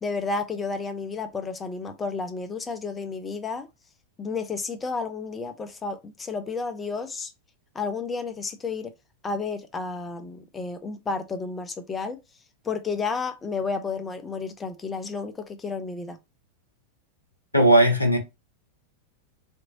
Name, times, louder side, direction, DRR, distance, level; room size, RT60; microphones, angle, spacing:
voice 1, 0.0-3.7 4.2-7.3 7.7-8.9 9.2-12.2 12.6-16.2, left 4 dB, 15° left, 0.5 m, -31 dB
voice 2, 17.5-18.2, right 1 dB, 85° left, 0.6 m, -17 dB
2.9 x 2.6 x 2.7 m
figure-of-eight pair, 90°, 0 cm